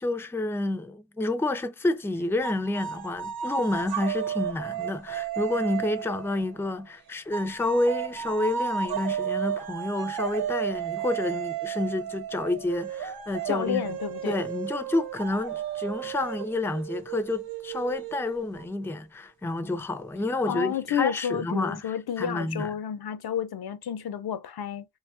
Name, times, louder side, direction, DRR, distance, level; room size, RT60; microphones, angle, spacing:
voice 1, 0.0-13.8 14.3-22.7, left 2 dB, 5° left, 0.4 m, -29 dB
sound 1, 2.4-6.8 7.3-18.7, right 9 dB, 75° right, 0.5 m, -33 dB
voice 2, 13.5-14.5 20.5-24.9, left 8 dB, 80° left, 0.5 m, -30 dB
3.0 x 2.3 x 2.4 m
wide cardioid pair, 70°, 37 cm